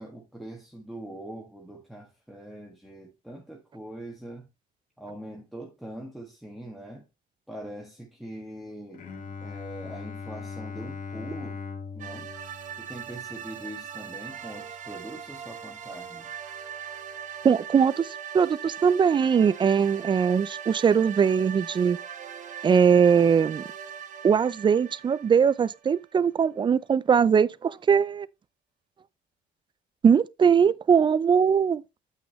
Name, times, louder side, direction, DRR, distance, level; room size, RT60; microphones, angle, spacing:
voice 1, 0.0-4.5 5.0-7.1 7.5-9.1 9.4-11.6 11.9-12.3 12.8-16.3, right 1 dB, ahead, 1.5 m, -42 dB
Bowed string instrument, 8.9-14.7, left 5 dB, 55° left, 1.6 m, -40 dB
sound 1, 12.0-26.2, right 8 dB, 50° right, 1.1 m, -40 dB
voice 2, 17.4-22.0 22.6-23.6 24.2-28.3 30.0-31.8, right 7 dB, 30° right, 0.4 m, -21 dB
8.3 x 6.0 x 3.1 m
cardioid pair, 110°, 17 cm